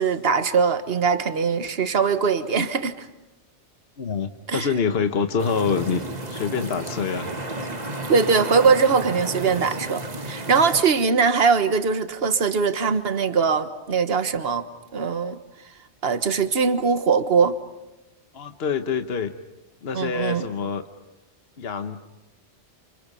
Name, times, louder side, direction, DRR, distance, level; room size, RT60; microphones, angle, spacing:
voice 1, 0.0-3.1 4.5-4.7 8.1-14.7 14.9-15.4 16.0-17.5 19.9-20.4, right 5 dB, 55° right, 10 dB, 1.5 m, -21 dB
voice 2, 4.0-6.0 6.3-7.6 18.3-19.3 19.8-20.8 21.6-22.1, left 6 dB, 60° left, 8 dB, 1.3 m, -26 dB
sound 1, 5.4-10.8, right 1 dB, 35° right, 1.7 m, -32 dB
29.5 x 28.5 x 5.5 m, 0.99 s
omnidirectional pair, 1.2 m